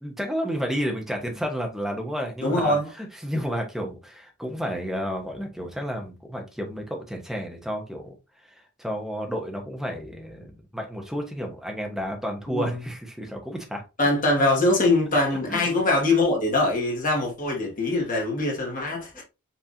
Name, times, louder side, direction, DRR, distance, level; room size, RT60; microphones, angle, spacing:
voice 1, 0.0-13.8 15.5-15.7 19.1-19.2, equal, ahead, 1.1 m, -31 dB
voice 2, 2.4-2.9 12.5-12.7 14.0-19.2, left 2 dB, 40° left, 1.9 m, -23 dB
5.7 x 3.4 x 2.7 m
head